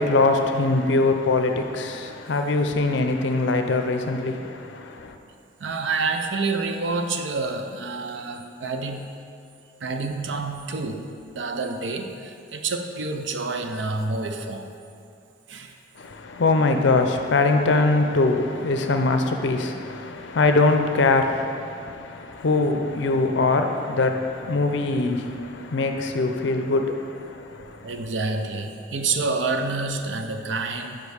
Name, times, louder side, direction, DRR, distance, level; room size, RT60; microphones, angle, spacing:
voice 1, 0.0-5.1 16.0-27.9, left 3 dB, 65° left, 0.6 m, -22 dB
voice 2, 5.6-9.2 9.8-14.7 15.5-15.7 27.8-31.0, right 3 dB, 70° right, 0.6 m, -28 dB
5.3 x 5.2 x 6.3 m
head